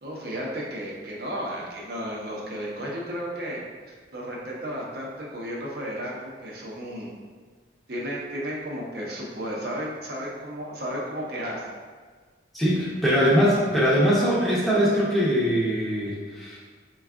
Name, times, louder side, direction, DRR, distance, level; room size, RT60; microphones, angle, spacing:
voice 1, 0.0-3.6 3.9-7.1 7.9-11.6, equal, 60° right, -4 dB, 0.7 m, -33 dB
voice 2, 12.5-16.6, equal, ahead, -8 dB, 0.7 m, -22 dB
4.5 x 2.3 x 3.6 m, 1.5 s
head